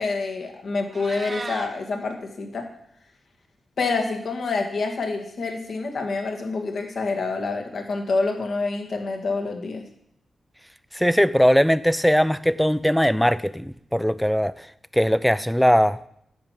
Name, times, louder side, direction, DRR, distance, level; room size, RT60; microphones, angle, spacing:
voice 1, 0.0-2.7 3.8-9.8, left 3 dB, 70° left, 3 dB, 1.9 m, -27 dB
Meow, 0.7-1.7, right 3 dB, 35° right, 1.0 m, -35 dB
voice 2, 10.9-14.5 14.9-16.0, equal, ahead, 16 dB, 0.4 m, -20 dB
10.0 x 4.8 x 7.5 m, 0.69 s
cardioid pair, 80°, 0 cm